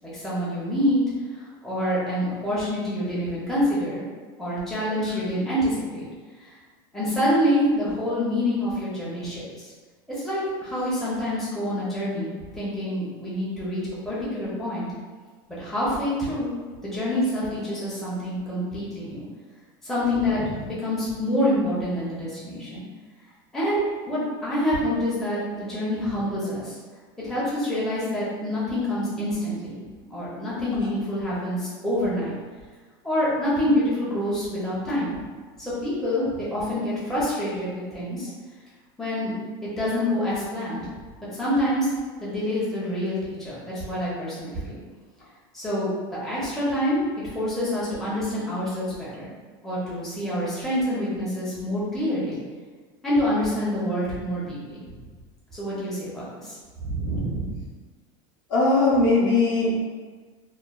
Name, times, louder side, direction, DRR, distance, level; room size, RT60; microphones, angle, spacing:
voice 1, 0.1-1.0 1.3-4.0 4.4-6.0 6.4-6.5 6.9-9.7 10.1-14.9 15.5-16.5 16.8-19.3 19.8-22.8 23.5-26.8 27.2-29.8 30.1-32.3 33.0-35.1 35.6-38.3 39.0-39.3 39.6-40.8 41.3-41.9 42.2-44.8 45.5-45.9 46.2-47.0 47.3-49.3 49.6-52.4 53.0-55.0 55.5-57.6, left 1 dB, 5° left, -10 dB, 0.6 m, -26 dB
voice 2, 58.5-59.8, left 2 dB, 40° left, -6 dB, 0.7 m, -20 dB
3.0 x 2.2 x 2.3 m, 1.5 s
supercardioid pair, 155°, 12 cm